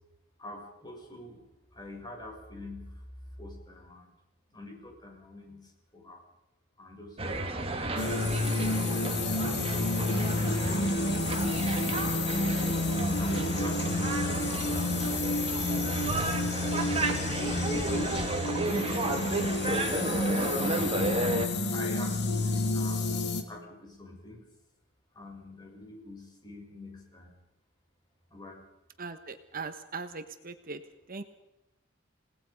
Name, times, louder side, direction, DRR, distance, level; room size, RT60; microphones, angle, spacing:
voice 1, 0.4-1.4 1.7-3.0 3.4-4.1 4.5-6.2 6.8-7.2 7.5-9.9 10.4-12.3 13.1-15.1 16.7-17.2 20.5-21.1 21.7-24.5 25.1-27.3 28.3-28.6, left 2 dB, 20° left, 0 dB, 6.8 m, -46 dB
sound 1, 7.2-21.5, right 2 dB, 30° right, 2.4 m, -32 dB
sound 2, 8.0-23.4, left 2 dB, 60° left, 2.5 m, -30 dB
voice 2, 29.0-30.8 31.1-31.2, right 4 dB, 45° right, 8 dB, 1.3 m, -39 dB
28.5 x 19.0 x 5.3 m, 0.94 s
head